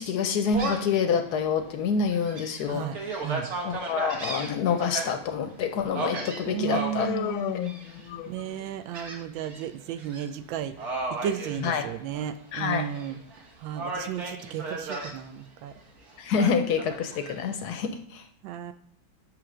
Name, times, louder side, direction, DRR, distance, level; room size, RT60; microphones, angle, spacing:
voice 1, 0.0-2.8 3.6-7.1 8.1-8.2 11.6-11.8 12.5-12.8 16.2-18.2, left 6 dB, 70° left, 7 dB, 1.0 m, -27 dB
Gull seagull, 0.5-1.0 1.5-1.6 2.1-5.1 5.9-7.1 7.6-8.1 8.9-9.6 10.0-10.2 10.8-12.3 12.7-13.4 13.8-15.1 16.4-17.4, right 2 dB, 40° right, 1.3 m, -34 dB
voice 2, 6.5-7.5 8.3-13.2 13.6-15.7 18.4-18.7, right 10 dB, 80° right, 10 dB, 1.3 m, -34 dB
Human voice, 7.0-8.7, left 10 dB, 85° left, 1.4 m, -33 dB
9.0 x 3.3 x 6.2 m, 0.64 s
omnidirectional pair, 2.2 m